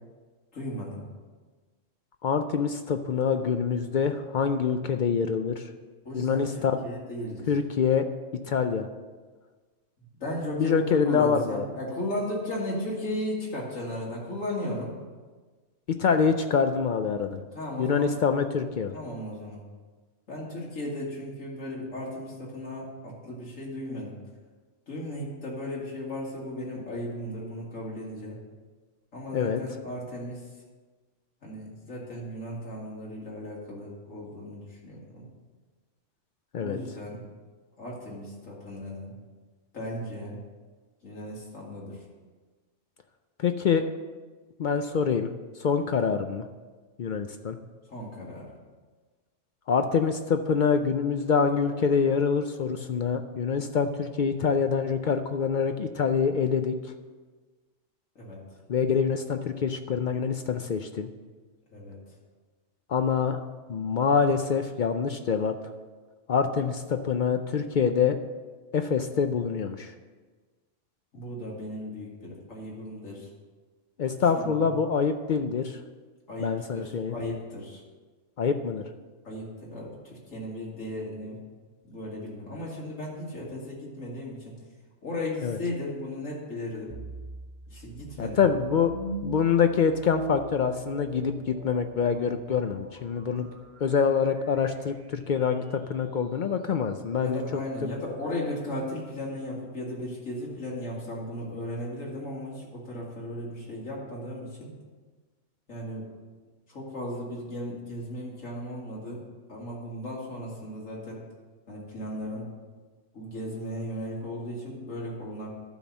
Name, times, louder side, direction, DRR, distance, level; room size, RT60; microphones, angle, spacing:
voice 1, 0.5-1.0 6.0-7.5 10.2-14.9 17.5-18.2 18.9-19.6 20.3-24.2 24.9-28.4 29.1-30.4 31.4-35.3 36.6-37.3 37.8-39.1 39.7-40.4 41.0-42.0 47.9-48.5 58.2-58.4 61.7-62.0 71.1-73.3 74.4-74.5 76.3-77.8 79.2-81.4 81.8-84.6 85.0-87.0 87.7-88.5 93.4-93.5 97.2-104.7 105.7-106.1 106.7-109.2 109.5-111.2 111.7-112.5 113.1-115.5, left 1 dB, 85° left, -5 dB, 2.4 m, -36 dB
voice 2, 2.2-5.6 6.1-6.8 7.5-8.0 8.5-8.9 10.6-11.6 15.9-17.4 17.8-18.9 29.3-29.6 36.5-36.8 43.4-43.8 44.6-45.3 45.6-46.5 47.0-47.6 49.7-56.8 58.7-61.1 62.9-63.4 63.7-65.6 66.3-68.2 68.7-69.9 74.0-75.8 76.4-77.1 78.4-78.8 85.4-85.6 88.2-88.9 89.2-93.5 93.8-97.9, left 6 dB, 65° left, 7 dB, 0.4 m, -25 dB
sound 1, 86.9-96.0, right 2 dB, 40° right, 0.7 m, -42 dB
12.0 x 4.0 x 7.1 m, 1.4 s
omnidirectional pair, 1.3 m